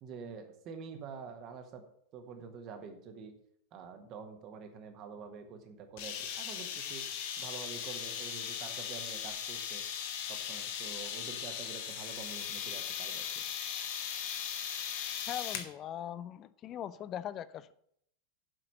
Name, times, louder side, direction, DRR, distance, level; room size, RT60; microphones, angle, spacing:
voice 1, 0.0-1.8 2.1-3.3 3.7-7.0 7.4-9.8 10.3-13.4, right 5 dB, 35° right, 6 dB, 1.5 m, -47 dB
sound 1, 6.0-15.7, left 8 dB, 50° left, 1.1 m, -38 dB
voice 2, 15.3-17.7, left 10 dB, 30° left, 16 dB, 0.5 m, -40 dB
7.8 x 5.8 x 7.6 m, 0.70 s
figure-of-eight pair, 90°, 0 cm